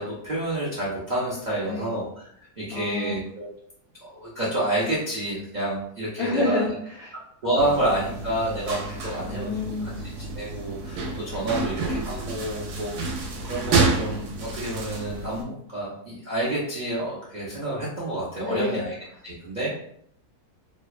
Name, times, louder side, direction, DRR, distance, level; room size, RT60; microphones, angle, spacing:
voice 1, 0.0-2.3 2.6-3.5 4.0-6.7 7.4-9.6 10.2-13.2 13.4-18.9 19.2-19.7, right 1 dB, 65° right, -8 dB, 0.4 m, -29 dB
voice 2, 1.7-2.0 2.7-3.1 6.2-7.2 7.6-7.7 9.3-10.0 18.4-18.8, left 3 dB, 80° left, -6 dB, 0.5 m, -29 dB
sound 1, 7.6-15.4, right 3 dB, 80° right, 1.1 m, -29 dB
2.7 x 2.1 x 2.3 m, 0.66 s
omnidirectional pair, 1.7 m